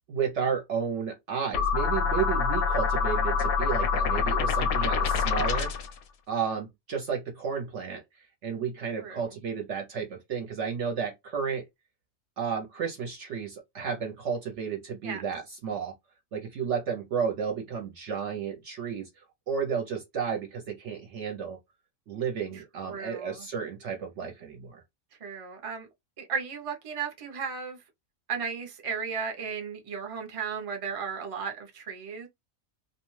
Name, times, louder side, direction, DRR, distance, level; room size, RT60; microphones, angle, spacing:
voice 1, 0.1-5.7 6.3-8.0 8.4-11.6 12.4-15.9 16.3-21.6 22.1-24.8, right 7 dB, 65° right, 0.8 m, -32 dB
sound 1, 1.5-5.9, left 6 dB, 80° left, 1.0 m, -26 dB
voice 2, 9.0-9.3 15.0-15.2 22.5-23.5 25.2-25.9 26.2-27.8 28.3-32.3, right 6 dB, 45° right, 0.4 m, -35 dB
2.5 x 2.1 x 3.1 m
omnidirectional pair, 1.5 m